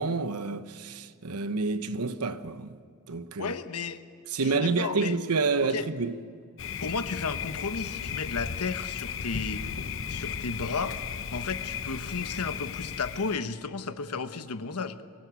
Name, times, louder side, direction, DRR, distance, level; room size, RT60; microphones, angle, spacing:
voice 1, 0.0-2.8 3.1-3.5 4.3-6.2, right 4 dB, 85° right, 1.0 m, -28 dB
voice 2, 3.4-4.0 4.4-5.1 5.6-5.9 6.8-9.6 10.1-11.0 11.3-15.0, left 4 dB, 85° left, 1.1 m, -33 dB
Thunder, 6.6-13.4, left 7 dB, 60° left, 0.9 m, -35 dB
23.5 x 16.5 x 8.3 m
head